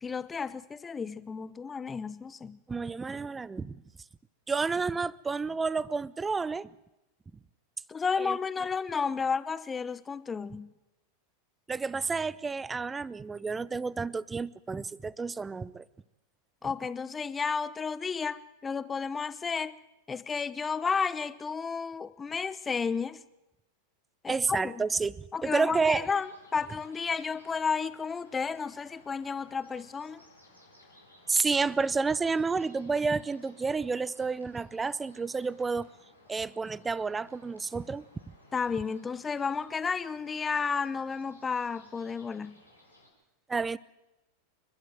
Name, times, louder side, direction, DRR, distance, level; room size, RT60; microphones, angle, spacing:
voice 1, 0.0-2.6 7.9-10.7 16.6-19.8 20.1-23.2 24.2-24.8 25.3-30.2 38.5-42.6, left 5 dB, 15° left, 1.0 m, -32 dB
voice 2, 2.7-3.8 4.5-6.7 8.2-8.4 11.7-15.8 24.3-26.1 31.3-35.9 36.3-38.0 43.5-43.8, right 4 dB, 15° right, 0.7 m, -30 dB
sound 1, 26.0-43.1, left 1 dB, 90° right, 6.8 m, -59 dB
30.0 x 12.0 x 9.3 m
figure-of-eight pair, 90°, 0 cm